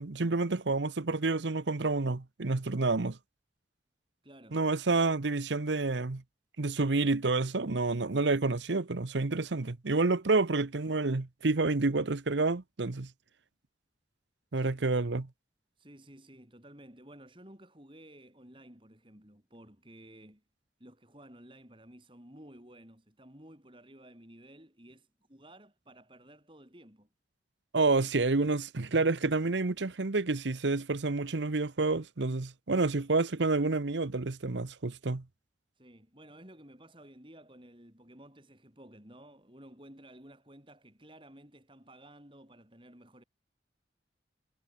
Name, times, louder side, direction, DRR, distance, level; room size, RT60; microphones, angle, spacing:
voice 1, 0.0-3.2 4.5-6.2 6.6-13.1 14.5-15.3 27.7-35.2, right 3 dB, 80° right, 1.0 m, -29 dB
voice 2, 4.2-4.6 14.5-14.9 15.8-20.4 20.8-27.1 35.8-43.2, right 1 dB, 30° right, 5.2 m, -54 dB
head